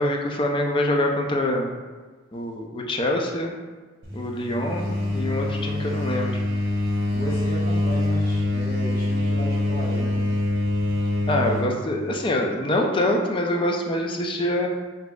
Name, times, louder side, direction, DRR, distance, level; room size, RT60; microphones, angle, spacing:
voice 1, 0.0-1.7 2.3-3.5 4.1-6.4 11.3-14.7, left 1 dB, 25° left, 1 dB, 0.4 m, -25 dB
sound 1, 4.0-11.8, left 1 dB, 55° right, 1.3 m, -25 dB
voice 2, 6.9-10.3, right 1 dB, 50° left, -7 dB, 1.4 m, -34 dB
6.1 x 2.7 x 2.3 m, 1.4 s
head